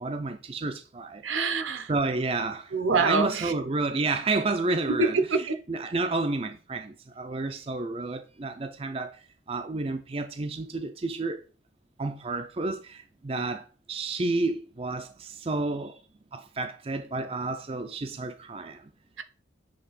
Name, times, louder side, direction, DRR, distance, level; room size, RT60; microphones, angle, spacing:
voice 1, 0.0-1.2 1.9-11.4 12.0-16.0 16.3-18.8, right 3 dB, 30° right, 0.5 m, -31 dB
voice 2, 1.2-1.9 2.7-3.5 4.9-5.6 19.2-19.3, right 4 dB, 85° right, 1.0 m, -25 dB
7.5 x 3.5 x 4.2 m
head